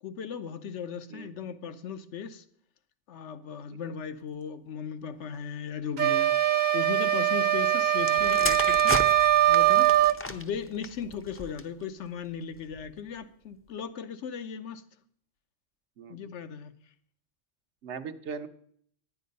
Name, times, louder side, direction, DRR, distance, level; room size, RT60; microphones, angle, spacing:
voice 1, 0.0-2.4 3.1-9.0 9.5-14.8 16.1-16.7, left 7 dB, 75° left, 1.1 m, -37 dB
sound 1, 6.0-10.2, right 12 dB, 50° right, 0.6 m, -22 dB
sound 2, 8.0-11.8 12.6-12.9, left 1 dB, 15° left, 0.4 m, -35 dB
voice 2, 16.0-16.3 17.8-18.5, right 6 dB, 70° right, 1.0 m, -39 dB
10.0 x 9.4 x 5.2 m
omnidirectional pair, 1.2 m